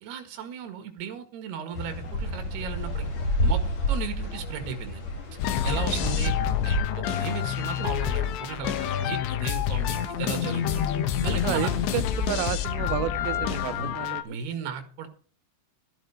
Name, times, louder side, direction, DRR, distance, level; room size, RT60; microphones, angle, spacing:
voice 1, 0.0-3.1 3.4-3.6 3.9-5.1 5.6-6.3 6.6-10.9 11.2-11.7 13.7-13.9 14.2-15.1, right 7 dB, 70° right, 3.8 m, -35 dB
sound 1, 1.7-6.8, left 1 dB, 45° left, 3.3 m, -29 dB
sound 2, 5.4-14.2, left 9 dB, 85° left, 3.5 m, -28 dB
voice 2, 11.4-14.4, right 15 dB, 85° right, 3.0 m, -31 dB
13.0 x 11.0 x 4.7 m
omnidirectional pair, 5.0 m